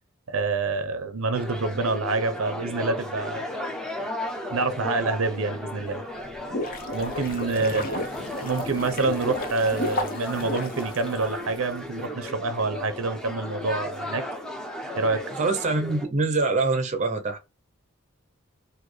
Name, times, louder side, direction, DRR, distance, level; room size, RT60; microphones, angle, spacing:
voice 1, 0.3-3.4 4.5-6.0 6.9-8.1 8.4-14.2 14.9-15.2, right 3 dB, 80° right, 0.7 m, -27 dB
sound 1, 1.3-16.1, left 1 dB, 5° left, 0.6 m, -35 dB
sound 2, 6.2-11.6, left 2 dB, 45° left, 0.8 m, -33 dB
voice 2, 7.5-7.9 15.3-17.4, right 3 dB, 35° right, 0.7 m, -25 dB
4.1 x 2.7 x 3.2 m
head